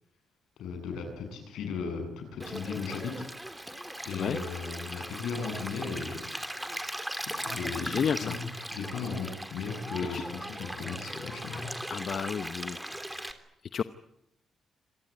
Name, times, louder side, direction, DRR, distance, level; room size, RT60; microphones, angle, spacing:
voice 1, 0.6-3.3 4.0-6.3 7.3-11.7, left 5 dB, 80° left, 5 dB, 7.8 m, -36 dB
Stream, 2.4-13.3, right 1 dB, 5° right, 3.2 m, -39 dB
voice 2, 7.8-8.3 10.1-10.2 11.9-12.8 13.7-13.8, left 7 dB, 55° left, 12 dB, 0.9 m, -31 dB
26.5 x 18.5 x 9.4 m, 0.81 s
cardioid pair, 80°, 0 cm